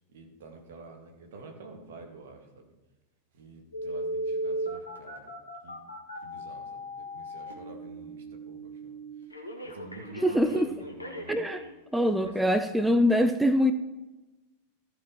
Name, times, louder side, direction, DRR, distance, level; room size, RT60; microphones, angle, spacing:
voice 1, 0.1-2.7 3.3-5.3 5.6-5.8 6.2-9.3 9.6-11.5 12.2-13.3, right 3 dB, 60° right, 3 dB, 2.1 m, -49 dB
Telephone, 3.7-11.7 12.3-12.4, right 1 dB, 85° left, 1.7 m, -37 dB
voice 2, 10.2-10.7 11.3-11.6 11.9-13.7, equal, 5° right, 9 dB, 0.5 m, -23 dB
14.0 x 5.1 x 5.7 m, 1.1 s
figure-of-eight pair, 90°, 0 cm